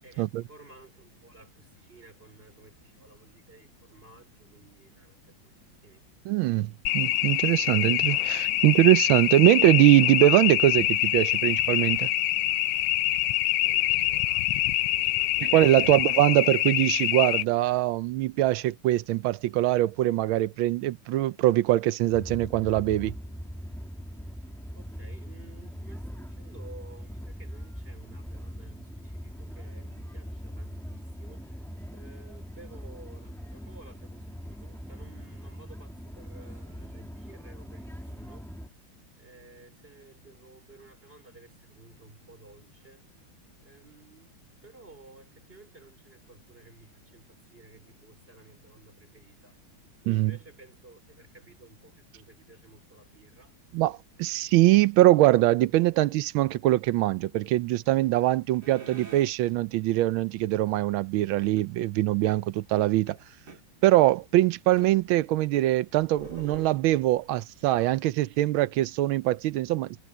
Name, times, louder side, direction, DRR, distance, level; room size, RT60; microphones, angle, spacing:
voice 1, 0.0-6.0 13.6-16.3 24.7-31.7 31.9-38.4 39.1-43.0 43.6-44.4 44.6-49.6 50.0-53.6, right 3 dB, 25° right, 5.2 m, -54 dB
voice 2, 6.3-12.1 15.4-23.1 50.1-50.3 53.7-63.2 63.8-70.0, right 15 dB, 80° right, 1.4 m, -23 dB
sound 1, 6.9-17.4, left 15 dB, 75° left, 1.3 m, -25 dB
sound 2, 22.1-38.7, equal, ahead, 1.8 m, -41 dB
sound 3, 58.6-59.3 61.4-61.7 63.1-63.6 64.8-64.9 65.6-67.2, right 4 dB, 50° right, 3.5 m, -45 dB
omnidirectional pair, 2.3 m